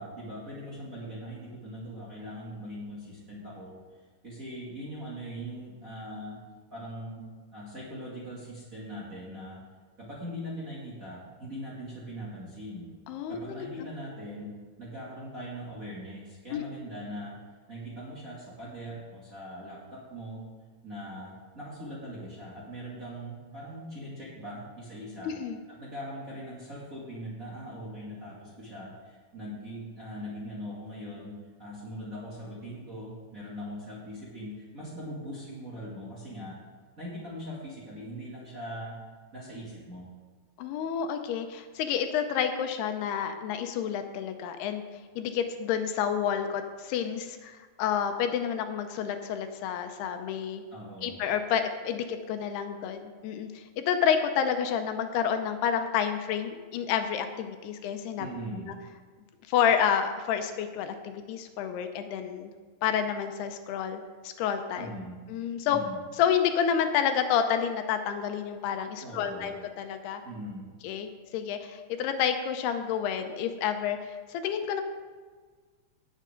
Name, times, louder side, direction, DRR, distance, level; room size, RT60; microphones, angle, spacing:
voice 1, 0.0-3.7 4.2-6.4 6.7-7.2 7.5-9.6 10.0-12.9 13.3-14.5 14.8-17.4 17.7-20.4 20.8-25.3 25.7-31.3 31.6-36.6 37.0-39.0 39.3-40.1 50.7-51.2 58.2-58.7 64.8-65.2 65.7-66.0 69.0-69.5 70.2-70.7, equal, 25° right, -8 dB, 2.2 m, -41 dB
voice 2, 13.1-13.7 16.5-16.6 25.3-25.6 40.6-44.9 45.2-50.6 51.0-58.3 59.5-62.5 62.8-64.9 65.3-65.8 66.2-70.2 70.8-74.8, left 8 dB, 80° left, 7 dB, 2.7 m, -29 dB
18.5 x 7.4 x 3.8 m, 1.5 s
omnidirectional pair, 4.7 m